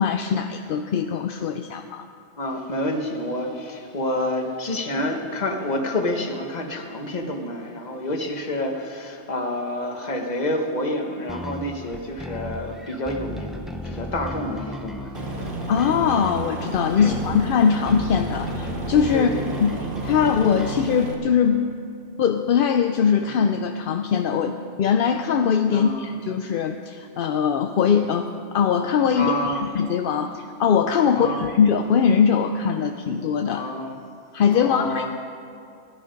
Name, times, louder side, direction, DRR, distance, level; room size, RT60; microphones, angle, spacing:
voice 1, 0.0-2.1 15.7-19.3 19.6-19.7 20.0-21.7 22.2-28.3 28.5-29.3 29.7-33.6 34.3-35.1, left 7 dB, 60° left, 6 dB, 0.6 m, -21 dB
voice 2, 2.4-15.5 17.0-17.2 19.1-19.6 23.2-23.3 25.7-26.1 29.1-29.7 31.1-31.4 33.5-34.0 34.5-35.1, left 1 dB, 40° left, 3 dB, 1.3 m, -28 dB
sound 1, 11.3-20.9, left 1 dB, ahead, 0.5 m, -35 dB
Aircraft, 15.1-21.1, right 2 dB, 50° right, 1.4 m, -32 dB
16.0 x 11.0 x 5.2 m, 2.4 s
omnidirectional pair, 1.2 m